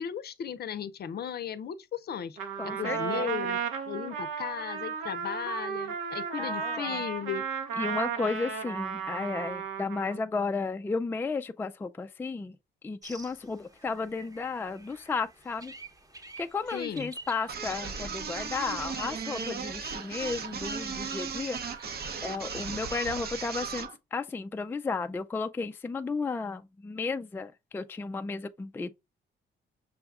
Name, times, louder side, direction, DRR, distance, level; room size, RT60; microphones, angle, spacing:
voice 1, 0.0-2.4 2.6-3.6 3.9-7.4 16.7-17.1, left 8 dB, 55° left, 0.6 m, -36 dB
Trumpet, 2.4-10.2, right 6 dB, 85° right, 1.2 m, -34 dB
voice 2, 2.6-3.3 6.4-7.0 7.8-12.6 12.8-15.7 16.4-21.6 22.2-28.9, left 4 dB, 10° left, 0.3 m, -33 dB
sound 1, 13.0-23.1, right 2 dB, 20° right, 1.0 m, -48 dB
sound 2, 17.5-24.0, right 5 dB, 50° right, 0.8 m, -36 dB
6.1 x 2.2 x 3.5 m
cardioid pair, 90°, 20 cm